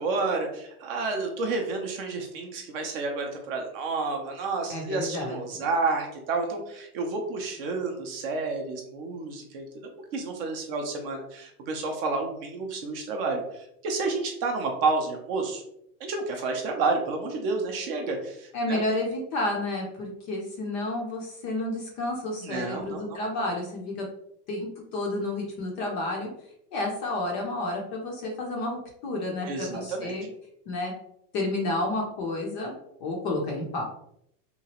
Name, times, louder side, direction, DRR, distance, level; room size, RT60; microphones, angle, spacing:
voice 1, 0.0-9.6 10.1-15.6 16.0-18.8 22.4-23.2 29.5-30.1, right 3 dB, 40° right, 3 dB, 0.4 m, -30 dB
voice 2, 4.7-5.6 18.5-24.0 24.5-26.3 26.7-30.3 30.7-30.9 31.3-32.7 33.0-33.8, left 2 dB, 30° left, 0 dB, 0.4 m, -30 dB
2.9 x 2.3 x 2.8 m, 0.74 s
supercardioid pair, 145°, 48 cm